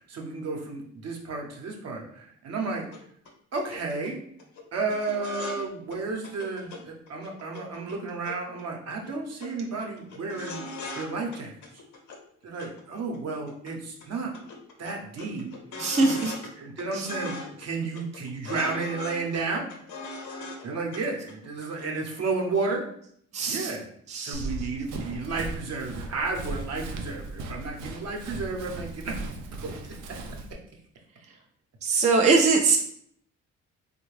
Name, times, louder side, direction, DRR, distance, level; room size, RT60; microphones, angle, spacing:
voice 1, 0.0-2.9 3.5-4.2 4.7-10.7 10.9-11.5 12.4-14.3 14.8-15.5 16.0-16.3 16.6-19.6 20.6-22.8 23.5-23.9 24.2-29.9 31.9-32.0, right 3 dB, 55° right, 1 dB, 0.8 m, -32 dB
sound 1, 2.9-3.0 3.2-3.3 3.6-4.1 4.4-4.6 4.9-5.6 5.9-6.0 6.2-6.8 7.1-8.6 8.9-9.1 9.4-9.5 9.8-11.1 11.3-12.2 12.6-13.7 14.0-14.1 14.3-16.5 16.8-17.7 17.9-20.7 20.9-21.0 21.3-21.9 22.1-22.2, left 3 dB, 75° left, 0.8 m, -40 dB
voice 2, 15.8-16.4 16.9-17.1 23.3-23.7 24.1-24.5 31.8-32.8, right 4 dB, 25° right, 2 dB, 0.4 m, -22 dB
Run, 24.3-30.5, right 2 dB, 90° right, 0.5 m, -37 dB
3.4 x 2.2 x 3.1 m, 0.66 s
cardioid pair, 90°, 30 cm